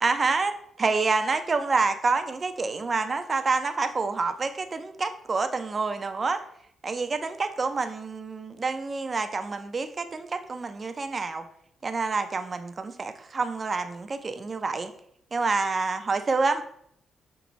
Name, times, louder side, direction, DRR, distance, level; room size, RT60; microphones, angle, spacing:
voice 1, 0.0-6.4 6.8-11.4 11.8-14.9 15.3-16.6, right 4 dB, 30° right, 8 dB, 0.4 m, -27 dB
4.6 x 2.9 x 3.9 m, 0.70 s
cardioid pair, 145°, 0 cm